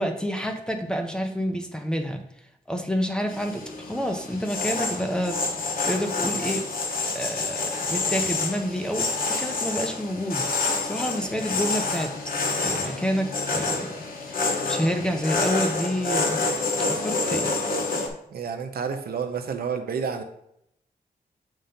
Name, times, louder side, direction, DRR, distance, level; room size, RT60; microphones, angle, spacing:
voice 1, 0.0-2.2 2.7-5.4 5.8-6.7 7.1-9.1 9.4-10.5 10.8-12.1 12.6-13.9 14.3-16.4 16.9-17.5, equal, 5° left, 4 dB, 0.6 m, -28 dB
sound 1, 3.3-18.1, left 3 dB, 65° left, 1.0 m, -28 dB
voice 2, 18.3-20.2, right 6 dB, 75° right, 6 dB, 0.7 m, -29 dB
7.5 x 2.7 x 5.1 m, 0.77 s
wide cardioid pair, 165°, 16 cm